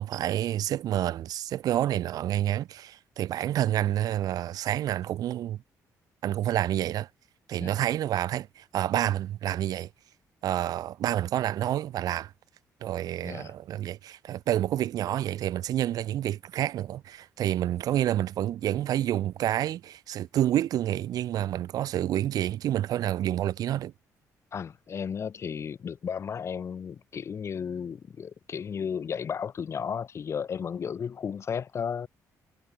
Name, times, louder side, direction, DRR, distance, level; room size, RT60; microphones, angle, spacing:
voice 1, 0.0-5.6 6.2-7.1 7.5-9.9 10.4-12.3 12.8-23.9, right 12 dB, 70° right, 1.0 m, -28 dB
voice 2, 13.2-13.5 24.5-32.1, left 7 dB, 45° left, 1.8 m, -34 dB
cardioid pair, 110°, 7 cm